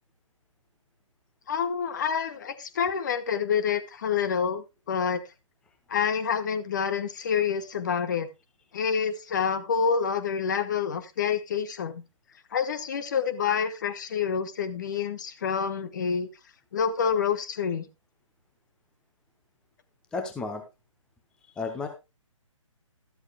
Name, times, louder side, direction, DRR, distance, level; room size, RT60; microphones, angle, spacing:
voice 1, 1.5-5.2 5.9-8.3 8.7-12.0 12.5-16.3 16.7-17.9, left 7 dB, 35° left, 11 dB, 1.0 m, -27 dB
voice 2, 20.1-20.6 21.6-21.9, left 4 dB, 5° left, 5 dB, 0.8 m, -32 dB
13.0 x 12.5 x 2.2 m, 0.26 s
figure-of-eight pair, 135°, 17 cm